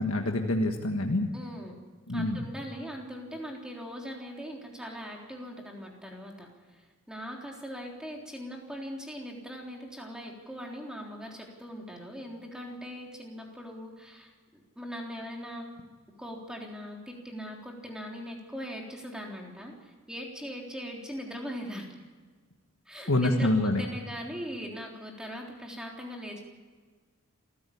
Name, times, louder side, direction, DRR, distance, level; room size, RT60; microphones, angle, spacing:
voice 1, 0.0-1.3 2.1-2.4 23.1-23.8, left 1 dB, 80° left, 3 dB, 1.7 m, -26 dB
voice 2, 1.3-1.8 2.1-15.7 16.2-21.9 22.9-26.4, equal, 5° right, 0 dB, 3.6 m, -40 dB
27.0 x 15.5 x 8.5 m, 1.5 s
head